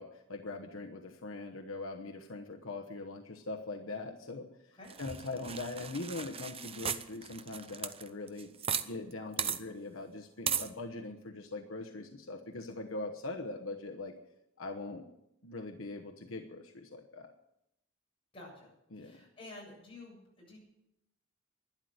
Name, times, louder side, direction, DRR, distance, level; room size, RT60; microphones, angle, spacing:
voice 1, 0.0-8.5 8.8-14.1 14.6-15.1 15.4-17.3 18.9-19.2, left 2 dB, 80° left, 3 dB, 1.1 m, -42 dB
sound 1, 4.9-8.9 9.1-9.2 9.4-9.6 10.5-10.7, right 7 dB, 30° right, 0.7 m, -36 dB
voice 2, 18.3-20.6, left 2 dB, 30° left, -3 dB, 7.7 m, -51 dB
12.0 x 11.0 x 8.0 m, 0.86 s
head